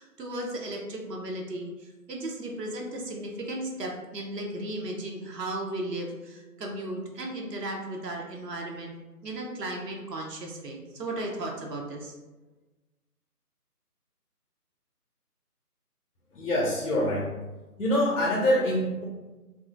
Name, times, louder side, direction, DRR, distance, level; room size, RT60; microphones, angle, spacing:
voice 1, 0.0-8.9 9.2-12.1, right 1 dB, 90° right, 0 dB, 0.8 m, -35 dB
voice 2, 16.3-17.4 17.8-19.0, left 1 dB, 70° left, -3 dB, 0.8 m, -25 dB
3.7 x 2.0 x 2.4 m, 1.2 s
figure-of-eight pair, 170°, 47 cm